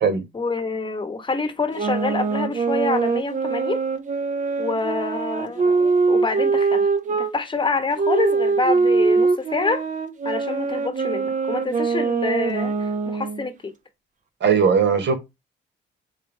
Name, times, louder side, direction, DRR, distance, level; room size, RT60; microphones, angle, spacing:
voice 1, 0.3-3.8 4.6-6.9 7.2-9.8 10.2-13.7, left 3 dB, 25° left, 1.0 m, -26 dB
sound 1, 1.7-7.3 8.0-13.4, right 4 dB, 40° right, 0.8 m, -22 dB
voice 2, 14.4-15.1, right 6 dB, 65° right, 1.4 m, -18 dB
3.5 x 3.2 x 4.5 m
cardioid pair, 90°, 20 cm